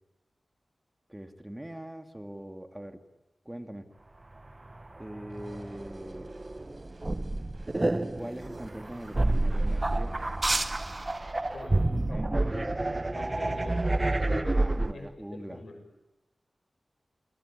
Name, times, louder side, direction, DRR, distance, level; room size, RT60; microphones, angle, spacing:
voice 1, 1.1-3.0 3.4-3.9 5.0-6.4 8.1-10.1 12.0-12.3 14.5-15.6, right 1 dB, 15° right, 7 dB, 2.3 m, -42 dB
sound 1, 4.5-14.9, right 2 dB, 30° right, 1.2 m, -29 dB
sound 2, 5.3-10.4, right 2 dB, 45° right, 6.3 m, -55 dB
voice 2, 11.5-12.6 13.1-15.8, left 2 dB, 90° left, 6 dB, 6.4 m, -45 dB
29.0 x 21.5 x 8.9 m, 1.0 s
wide cardioid pair, 80°, 0 cm